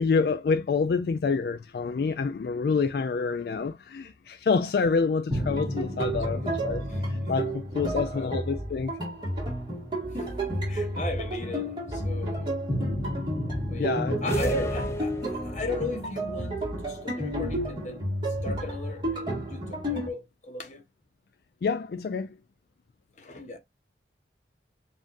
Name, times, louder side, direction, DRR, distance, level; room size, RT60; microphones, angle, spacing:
voice 1, 0.0-8.9 13.8-14.2 14.5-14.7 21.6-22.3, left 5 dB, 55° left, 0.3 m, -27 dB
sound 1, 5.3-20.1, right 1 dB, 25° right, 1.8 m, -31 dB
voice 2, 5.9-6.4 6.9-7.1 7.6-8.4 10.1-10.3 10.7-12.7 13.7-20.8 23.2-23.6, left 2 dB, 40° left, 1.1 m, -38 dB
sound 2, 14.3-15.8, equal, 15° left, 0.7 m, -31 dB
7.3 x 2.5 x 2.5 m
head